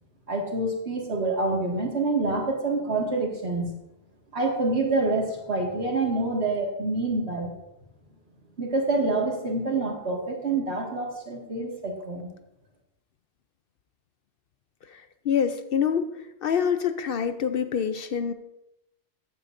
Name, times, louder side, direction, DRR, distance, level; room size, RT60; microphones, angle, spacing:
voice 1, 0.3-3.7 4.3-7.5 8.6-12.3, right 2 dB, 70° right, 0 dB, 2.2 m, -27 dB
voice 2, 14.9-16.1 16.4-18.3, left 7 dB, 60° left, 10 dB, 0.7 m, -26 dB
14.5 x 9.4 x 2.6 m, 0.89 s
omnidirectional pair, 1.2 m